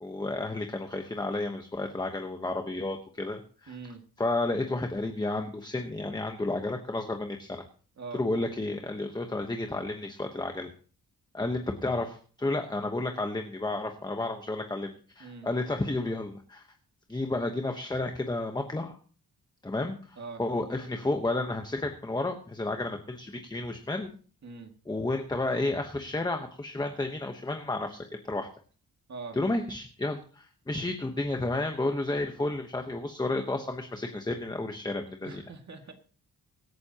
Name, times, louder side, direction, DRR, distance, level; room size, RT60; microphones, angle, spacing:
voice 1, 0.0-3.7 4.2-7.6 8.1-10.7 11.3-16.6 17.1-18.9 19.6-24.1 24.9-28.5 29.3-35.4, left 2 dB, 10° left, 4 dB, 1.0 m, -31 dB
voice 2, 3.7-4.0 8.0-8.2 15.2-15.5 20.2-20.4 24.4-24.7 29.1-29.4 35.2-35.9, right 4 dB, 45° right, 4 dB, 2.1 m, -42 dB
24.0 x 9.5 x 2.9 m, 0.42 s
wide cardioid pair, 150°, 37 cm